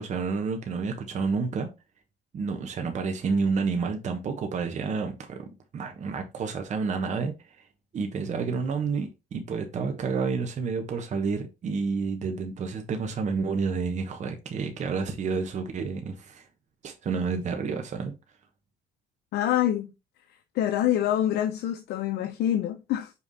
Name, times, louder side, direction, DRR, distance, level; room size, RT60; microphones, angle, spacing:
voice 1, 0.0-1.7 2.3-5.5 5.7-7.7 7.9-16.5 16.8-18.1, right 5 dB, 45° right, 1.2 m, -29 dB
voice 2, 19.3-19.9 20.5-23.1, left 11 dB, 75° left, 0.8 m, -26 dB
5.5 x 4.6 x 4.1 m
cardioid pair, 110°, 17 cm